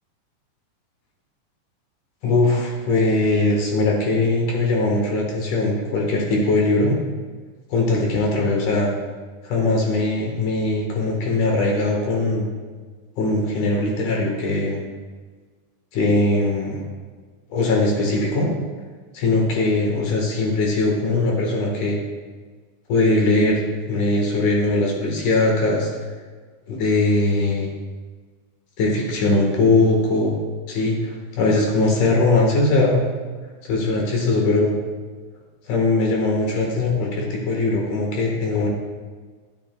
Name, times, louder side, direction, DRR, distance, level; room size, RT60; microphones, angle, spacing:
voice 1, 2.2-7.0 7.7-8.9 9.4-12.5 13.2-14.8 15.9-16.8 17.5-18.5 19.1-22.0 22.9-25.9 26.7-27.7 28.8-30.4 30.7-33.0 33.7-34.7 35.7-38.7, left 2 dB, 60° left, -1 dB, 2.3 m, -20 dB
11.5 x 10.0 x 2.3 m, 1.5 s
omnidirectional pair, 5.3 m